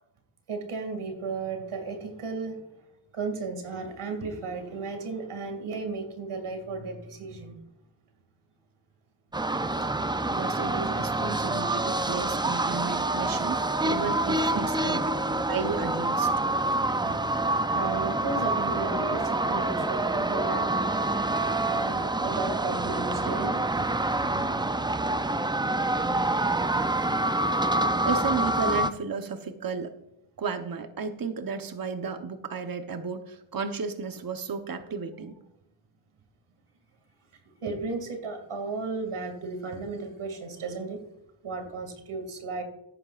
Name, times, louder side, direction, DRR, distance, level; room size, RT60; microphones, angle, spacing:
voice 1, 0.5-2.6 3.1-7.6 10.7-10.8 14.5-14.7 17.1-17.2 17.7-23.9 24.2-24.8 26.3-26.5 26.8-27.5 37.4-41.0 41.4-42.6, right 4 dB, 80° right, 5 dB, 2.5 m, -35 dB
sound 1, 9.3-28.9, right 2 dB, 10° right, 0.4 m, -27 dB
voice 2, 10.3-15.2 15.5-16.5 28.0-29.9 30.4-35.4, right 5 dB, 45° right, 7 dB, 1.1 m, -33 dB
14.0 x 11.0 x 2.5 m, 0.82 s
cardioid pair, 80°, 49 cm